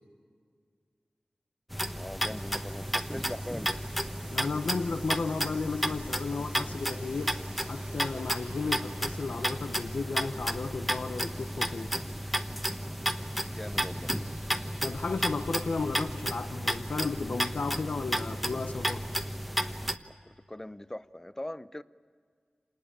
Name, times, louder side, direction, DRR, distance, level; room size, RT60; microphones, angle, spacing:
sound 1, 1.7-20.0, equal, ahead, 1.1 m, -33 dB
voice 1, 1.9-3.8 13.5-14.1 20.1-21.8, left 1 dB, 15° left, 0.7 m, -41 dB
sound 2, 2.4-19.2, right 3 dB, 85° right, 2.4 m, -54 dB
voice 2, 4.3-11.9 14.8-19.1, left 4 dB, 85° left, 1.0 m, -34 dB
27.0 x 20.0 x 8.9 m
wide cardioid pair, 75°, 3 cm